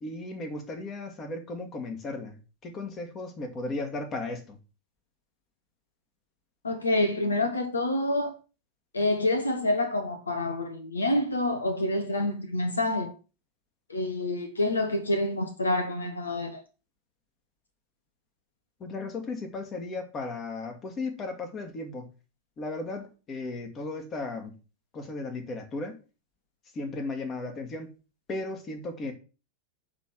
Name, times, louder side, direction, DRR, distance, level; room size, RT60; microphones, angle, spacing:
voice 1, 0.0-4.6 18.8-22.1 22.6-24.5 24.9-26.0 26.7-27.9 28.3-29.1, left 3 dB, 30° left, 2.0 m, -35 dB
voice 2, 6.6-8.3 8.9-13.1 13.9-16.6, left 1 dB, 75° left, 1.2 m, -27 dB
11.0 x 3.8 x 6.0 m
figure-of-eight pair, 90°, 0 cm